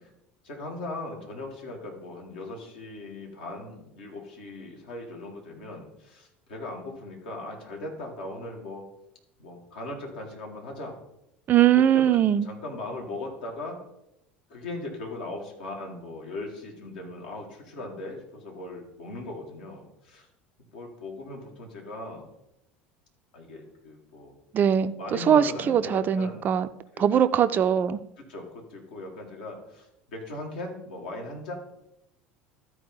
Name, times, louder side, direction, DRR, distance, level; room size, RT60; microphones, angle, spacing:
voice 1, 0.4-8.9 9.4-11.0 11.9-13.8 14.5-20.3 20.7-22.3 23.3-24.4 25.0-26.4 26.9-27.2 27.5-27.6 28.2-31.5, left 2 dB, 65° left, 0 dB, 1.9 m, -39 dB
voice 2, 11.5-12.5 24.5-26.7 27.0-28.0, right 9 dB, 30° right, 13 dB, 0.4 m, -21 dB
13.0 x 4.7 x 3.9 m, 0.85 s
figure-of-eight pair, 70°, 6 cm